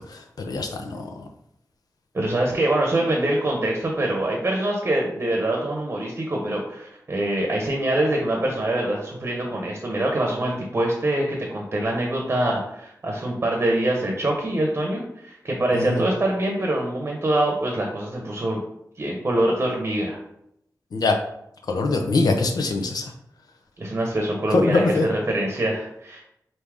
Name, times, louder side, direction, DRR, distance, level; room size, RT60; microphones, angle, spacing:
voice 1, 0.1-1.2 15.7-16.0 20.9-21.2 21.7-23.1 24.5-25.1, left 3 dB, 80° left, 4 dB, 0.6 m, -23 dB
voice 2, 2.1-18.6 19.0-20.2 23.8-26.2, right 1 dB, 35° right, 0 dB, 0.8 m, -24 dB
4.7 x 2.7 x 3.5 m, 0.78 s
wide cardioid pair, 110°, 6 cm